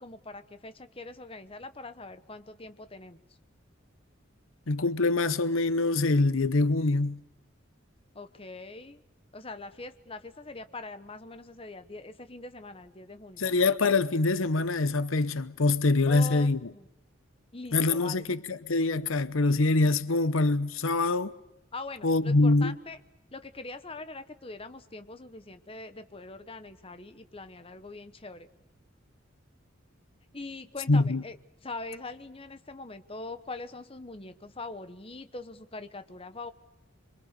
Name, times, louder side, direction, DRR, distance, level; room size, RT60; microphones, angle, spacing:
voice 1, 0.0-3.2 8.1-9.0 9.3-13.4 16.1-16.9 17.5-18.3 21.7-23.0 23.3-28.5 30.3-31.4 31.6-36.5, left 3 dB, 30° left, 1.2 m, -42 dB
voice 2, 4.7-7.2 13.4-16.6 17.7-21.3 22.0-22.7 30.9-31.2, left 3 dB, 85° left, 0.9 m, -24 dB
26.5 x 24.0 x 6.8 m
head